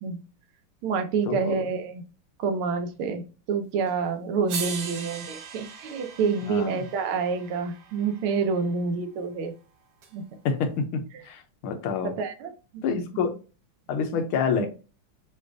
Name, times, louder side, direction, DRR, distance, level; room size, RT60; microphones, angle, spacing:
voice 1, 0.8-2.0 2.4-3.2 3.5-9.5 10.1-10.2 12.0-12.8, right 5 dB, 85° right, 1.6 m, -28 dB
sound 1, 3.9-4.0 4.5-8.7 10.0-10.1, right 5 dB, 60° right, 1.2 m, -39 dB
voice 2, 6.5-6.8 10.4-12.1 12.8-13.4 13.9-14.7, left 5 dB, 90° left, 1.6 m, -27 dB
6.3 x 2.4 x 2.5 m
omnidirectional pair, 2.3 m